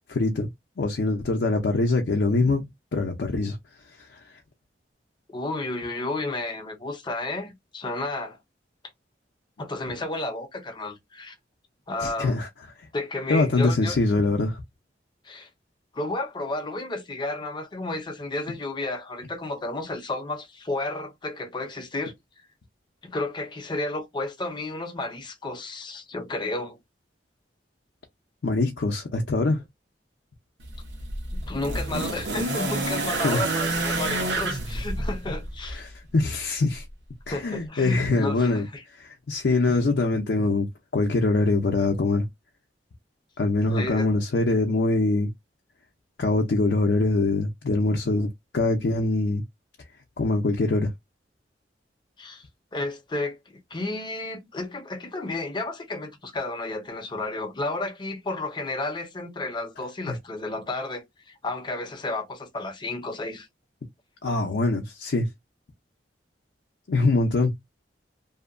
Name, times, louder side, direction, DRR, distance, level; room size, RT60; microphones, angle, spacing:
voice 1, 0.1-0.5 0.8-2.6 2.9-3.6 12.0-12.5 13.3-14.6 28.4-29.6 33.2-33.4 35.7-36.8 37.3-38.7 38.9-42.3 43.4-45.3 46.2-48.3 48.5-49.4 50.2-50.9 60.1-60.2 64.2-65.3 66.9-67.5, left 2 dB, 70° left, 0.5 m, -23 dB
voice 2, 5.3-8.4 9.6-11.3 11.9-12.4 12.9-14.0 15.2-15.5 15.9-22.1 23.0-26.8 31.3-35.8 37.3-38.8 43.6-44.1 52.2-52.4 52.7-63.5, left 2 dB, 25° left, 0.6 m, -32 dB
sound 1, 30.6-35.8 36.9-37.0, right 2 dB, 80° right, 0.8 m, -29 dB
2.7 x 2.1 x 2.4 m
head